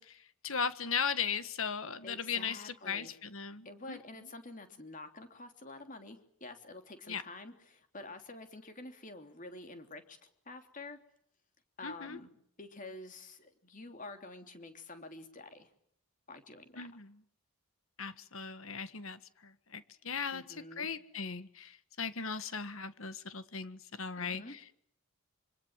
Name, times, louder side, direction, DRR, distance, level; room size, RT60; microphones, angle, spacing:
voice 1, 0.0-4.0 7.1-7.2 11.8-12.2 16.8-17.1 18.0-20.4 20.8-24.8, left 6 dB, 65° left, 12 dB, 1.6 m, -38 dB
voice 2, 2.0-3.1 3.6-11.0 11.8-15.7 16.3-16.9 20.3-20.9 24.2-24.6, left 2 dB, 35° left, 6 dB, 3.2 m, -48 dB
26.5 x 25.5 x 7.5 m, 0.70 s
head